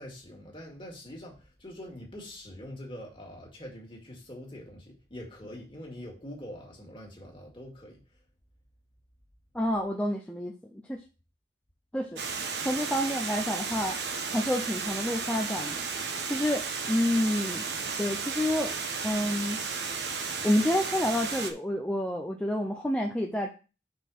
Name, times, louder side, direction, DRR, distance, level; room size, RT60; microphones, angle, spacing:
voice 1, 0.0-8.0, left 1 dB, 30° left, -1 dB, 2.3 m, -44 dB
voice 2, 9.5-11.0 11.9-12.2 12.6-14.0 14.3-17.7 18.0-18.7 19.0-19.6 20.4-23.5, left 1 dB, 5° left, 1 dB, 0.6 m, -29 dB
Water, 12.2-21.5, right 5 dB, 80° right, 1.1 m, -34 dB
5.6 x 4.4 x 6.1 m, 0.33 s
head